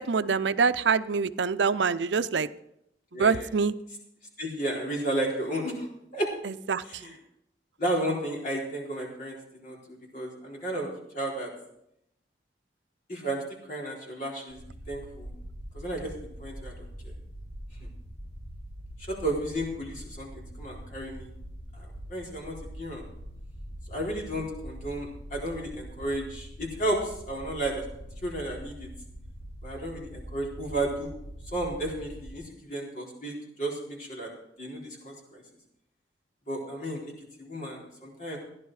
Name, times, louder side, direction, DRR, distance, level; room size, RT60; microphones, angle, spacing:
voice 1, 0.0-2.5 3.1-3.7 6.4-7.0, right 5 dB, 80° right, 13 dB, 0.6 m, -25 dB
voice 2, 3.1-3.5 4.4-5.9 6.1-6.3 6.8-7.1 7.8-11.5 13.1-13.4 13.7-14.6 14.9-15.3 15.7-16.1 16.4-17.1 17.8-17.9 19.0-21.3 21.7-23.0 23.9-27.9 28.2-28.9 29.6-31.1 31.5-34.3 34.6-35.4 36.5-37.1 37.4-38.4, right 1 dB, 45° left, -2 dB, 4.0 m, -33 dB
sound 1, 14.5-32.4, equal, 85° left, 6.6 m, -43 dB
15.0 x 11.0 x 4.8 m, 0.77 s
head